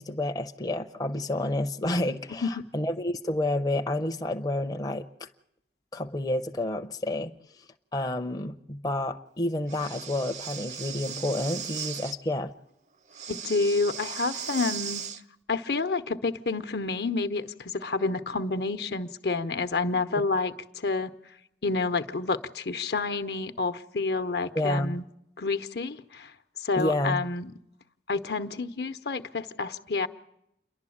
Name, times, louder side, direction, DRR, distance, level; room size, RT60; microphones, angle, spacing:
voice 1, 0.0-5.3 5.9-7.3 7.9-12.5 24.5-25.0 26.7-27.2, left 1 dB, 20° left, 5 dB, 0.7 m, -29 dB
Breathing, 9.7-12.2 13.1-15.2, right 7 dB, 40° right, 0.7 m, -37 dB
voice 2, 13.3-15.1 15.5-21.1 21.6-25.0 25.4-26.3 26.6-27.5 28.1-30.1, left 3 dB, 65° left, 9 dB, 0.9 m, -29 dB
28.5 x 11.5 x 8.6 m, 0.80 s
head